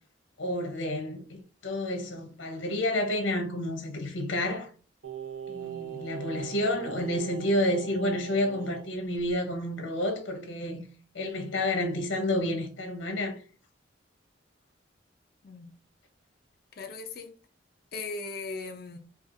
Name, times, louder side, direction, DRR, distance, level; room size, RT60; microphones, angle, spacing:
voice 1, 0.4-4.7 5.5-10.8 11.1-13.4, left 1 dB, 75° left, 0.8 m, -30 dB
Singing, 5.0-8.9 9.2-9.3, right 7 dB, 85° right, 0.7 m, -40 dB
voice 2, 16.8-17.4 17.9-19.0, left 3 dB, 50° left, 0.4 m, -38 dB
4.3 x 2.3 x 2.5 m
head